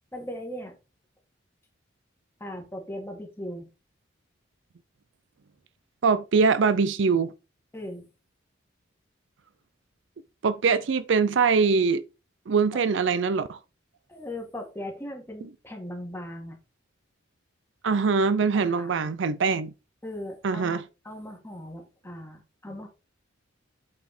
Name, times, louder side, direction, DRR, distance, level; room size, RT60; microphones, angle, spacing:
voice 1, 0.1-0.8 2.4-3.7 7.7-8.1 14.1-16.6 18.5-19.1 20.0-20.8 21.0-22.9, left 1 dB, 10° left, 1.8 m, -38 dB
voice 2, 6.0-7.3 10.4-12.0 12.5-13.6 17.8-19.7 20.4-20.8, right 5 dB, 65° right, 0.4 m, -23 dB
8.6 x 4.2 x 4.3 m
head